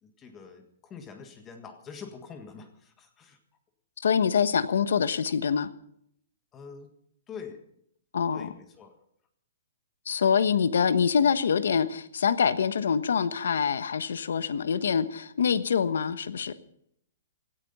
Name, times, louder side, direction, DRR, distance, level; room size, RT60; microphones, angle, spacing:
voice 1, 0.0-3.4 6.5-6.9 7.3-7.6 8.3-9.0, left 6 dB, 15° left, 7 dB, 1.6 m, -45 dB
voice 2, 4.0-5.7 8.1-8.5 10.1-16.5, left 7 dB, 85° left, 13 dB, 1.2 m, -25 dB
17.0 x 14.0 x 5.5 m, 0.69 s
hypercardioid pair, 160°, 0 cm